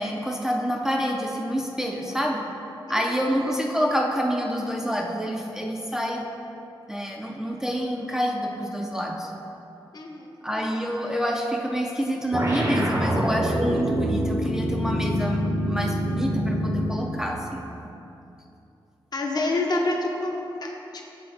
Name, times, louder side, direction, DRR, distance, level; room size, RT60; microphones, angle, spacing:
voice 1, 0.0-2.5 2.9-6.3 6.9-9.3 10.4-17.7, equal, 5° right, 0 dB, 0.4 m, -27 dB
voice 2, 9.9-10.3 19.1-21.0, left 2 dB, 50° left, 1 dB, 0.7 m, -27 dB
sound 1, 12.3-17.0, equal, 30° right, 0.7 m, -25 dB
7.6 x 3.4 x 3.9 m, 2.7 s
wide cardioid pair, 105°, 9 cm